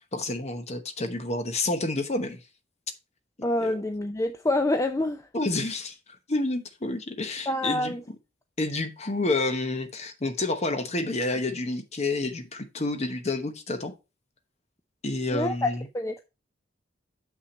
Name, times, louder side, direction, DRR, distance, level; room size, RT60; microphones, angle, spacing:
voice 1, 0.0-2.4 3.6-3.7 5.3-5.9 6.3-7.9 8.6-13.9 15.0-15.9, left 2 dB, 35° left, 1.0 m, -29 dB
voice 2, 3.4-5.3 7.5-8.0 15.3-16.2, left 2 dB, 15° left, 0.4 m, -27 dB
6.6 x 5.9 x 4.2 m
head